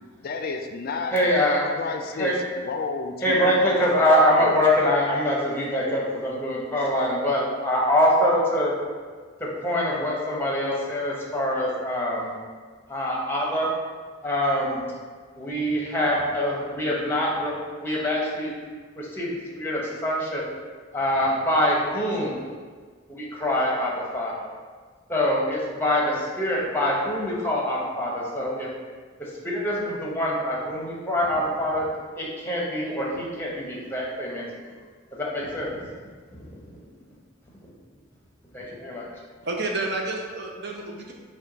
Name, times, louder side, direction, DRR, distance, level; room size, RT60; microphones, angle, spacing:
voice 1, 0.2-1.2 1.8-4.6, left 4 dB, 50° left, 5 dB, 0.3 m, -32 dB
voice 2, 1.1-1.8 2.2-2.4 3.2-8.7 9.6-12.3 12.9-13.7 14.2-14.8 15.4-18.5 19.0-19.3 19.6-20.4 20.9-22.4 23.1-24.5 25.1-28.7 29.4-31.9 32.2-34.4 35.1-35.9 36.3-36.6 38.5-39.1, left 1 dB, 10° left, -3 dB, 0.8 m, -24 dB
voice 3, 39.4-41.1, right 2 dB, 55° right, 0 dB, 0.6 m, -30 dB
5.7 x 2.3 x 3.9 m, 1.5 s
head